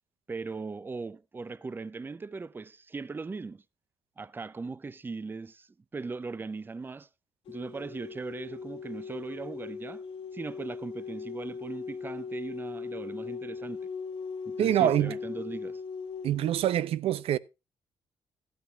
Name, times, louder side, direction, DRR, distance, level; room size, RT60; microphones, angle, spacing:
voice 1, 0.3-3.6 4.2-7.1 7.5-10.0 10.3-13.8 14.5-15.8, right 4 dB, 20° right, 0.5 m, -39 dB
sound 1, 7.5-16.5, left 5 dB, 85° left, 2.2 m, -39 dB
voice 2, 14.6-15.1 16.2-17.4, right 11 dB, 80° right, 0.5 m, -25 dB
13.5 x 13.0 x 2.3 m
cardioid pair, 100°, 10 cm